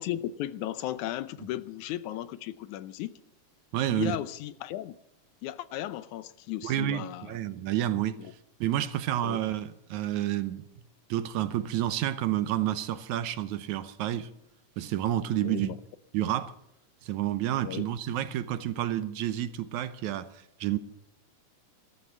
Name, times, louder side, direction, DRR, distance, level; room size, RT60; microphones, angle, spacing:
voice 1, 0.0-3.1 3.9-4.9 5.4-7.3 9.2-9.4 15.4-15.7 17.6-17.9, left 13 dB, 80° left, 2.1 m, -35 dB
voice 2, 3.7-4.1 6.6-8.2 8.6-10.7 11.1-14.3 14.8-15.7 16.1-16.5 17.0-20.3 20.6-20.8, right 12 dB, 75° right, 2.2 m, -29 dB
14.5 x 13.0 x 7.4 m
omnidirectional pair, 3.5 m